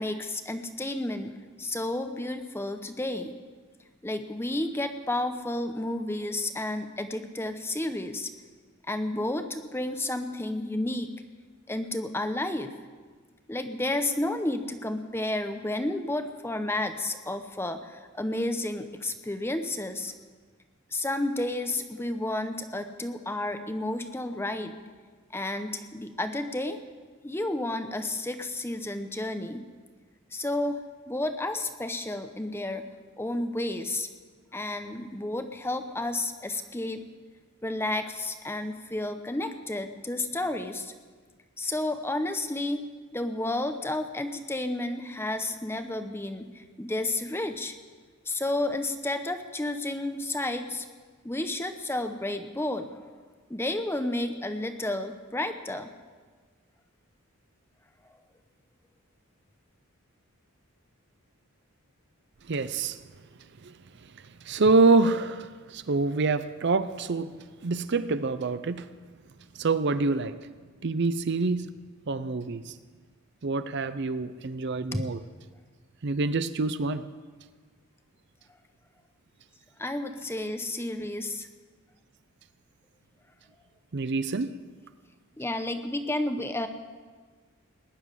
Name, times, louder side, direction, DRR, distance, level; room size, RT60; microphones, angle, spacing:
voice 1, 0.0-3.4 4.0-8.3 8.9-11.1 11.7-12.7 13.5-20.1 20.9-24.7 25.3-26.8 27.2-29.6 30.3-30.8 31.1-32.9 33.2-34.1 34.5-37.1 37.6-40.9 41.6-42.8 43.1-47.8 48.3-50.9 51.2-53.0 53.5-55.9 74.9-75.1 79.8-81.5 85.4-86.7, left 1 dB, 10° left, 8 dB, 0.8 m, -31 dB
voice 2, 62.5-63.0 63.6-63.7 64.4-67.4 67.6-68.9 69.6-70.4 70.8-71.7 72.1-72.7 73.4-75.2 76.0-77.0 83.9-84.5, right 3 dB, 50° right, 13 dB, 0.6 m, -26 dB
19.5 x 7.2 x 9.9 m, 1.5 s
head